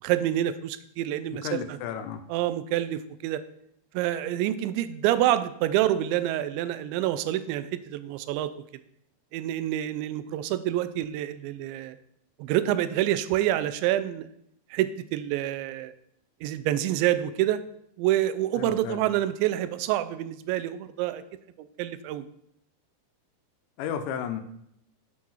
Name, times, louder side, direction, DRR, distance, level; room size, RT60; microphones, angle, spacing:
voice 1, 0.0-1.8 2.3-3.4 3.9-8.5 9.3-12.0 12.4-14.3 14.7-15.9 16.4-17.6 18.0-21.2 21.6-22.3, right 13 dB, 90° right, 13 dB, 2.9 m, -27 dB
voice 2, 1.3-2.2 18.6-19.0 23.8-24.4, left 8 dB, 85° left, 7 dB, 3.1 m, -33 dB
8.7 x 6.1 x 7.2 m, 0.74 s
omnidirectional pair, 5.1 m